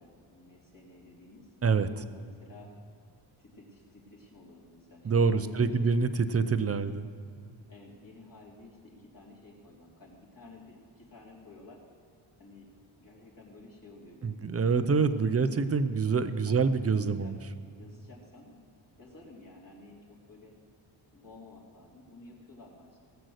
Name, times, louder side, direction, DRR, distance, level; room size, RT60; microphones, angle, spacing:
voice 1, 0.0-1.5 2.0-2.7 3.4-5.9 6.6-7.0 7.7-11.8 12.4-12.7 13.0-15.5 15.9-16.0 16.4-16.7 17.0-17.3 17.6-18.5 19.0-20.5 21.1-23.0, left 2 dB, 40° left, -4 dB, 3.4 m, -52 dB
voice 2, 5.0-7.1 14.2-17.4, right 5 dB, 30° right, 12 dB, 0.6 m, -26 dB
18.0 x 8.0 x 6.5 m, 2.4 s
wide cardioid pair, 140°, 49 cm